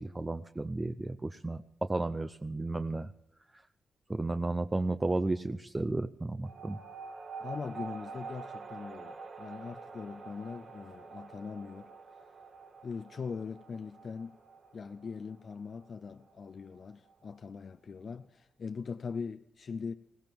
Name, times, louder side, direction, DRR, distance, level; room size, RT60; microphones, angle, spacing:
voice 1, 0.0-3.1 3.5-3.6 4.1-6.8, right 2 dB, 20° right, 0.5 m, -33 dB
sound 1, 6.4-17.4, right 4 dB, 55° right, 1.5 m, -47 dB
voice 2, 7.4-12.3 12.8-14.3 14.7-19.9, left 5 dB, 55° left, 0.5 m, -41 dB
21.0 x 16.5 x 3.6 m
cardioid pair, 80°, 0 cm